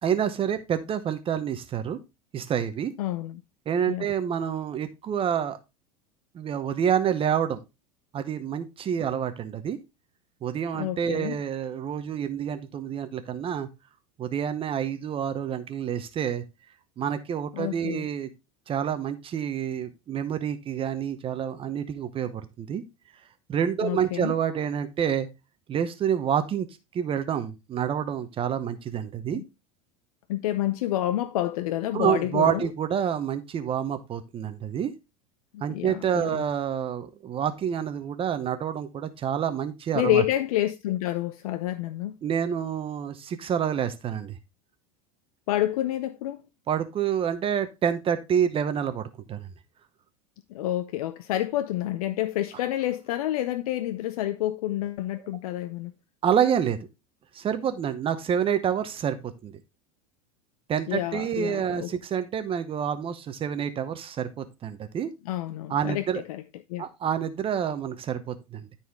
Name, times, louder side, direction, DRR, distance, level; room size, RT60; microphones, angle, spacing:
voice 1, 0.0-2.0 2.3-2.9 3.7-5.6 6.3-7.6 8.1-9.8 10.4-13.7 14.2-16.4 17.0-18.3 18.7-22.8 23.5-25.3 25.7-26.7 26.9-29.4 31.9-34.9 35.6-40.2 42.2-44.4 46.7-49.0 49.3-49.5 56.2-56.8 57.3-59.5 60.7-65.1 65.7-66.2 66.8-68.7, right 8 dB, 30° right, 0.8 m, -28 dB
voice 2, 3.0-3.4 3.9-4.1 10.7-11.4 17.5-18.1 23.8-24.4 29.3-29.4 30.3-32.7 35.5-36.4 39.9-42.2 45.5-46.4 50.5-55.9 60.9-61.9 65.2-66.4 66.7-66.9, left 14 dB, 85° left, 0.6 m, -29 dB
12.5 x 4.3 x 3.6 m
supercardioid pair, 125°, 19 cm